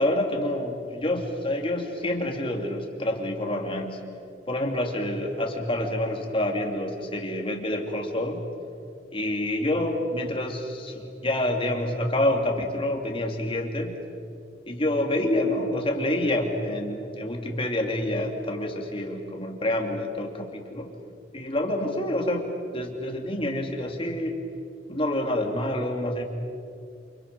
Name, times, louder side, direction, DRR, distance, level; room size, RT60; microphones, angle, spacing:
voice 1, 0.0-4.0 4.5-8.5 9.1-14.0 14.7-20.9 21.3-22.5 22.7-24.3 24.9-26.2, left 1 dB, 30° left, 2 dB, 2.9 m, -27 dB
29.0 x 28.5 x 5.5 m, 2.4 s
head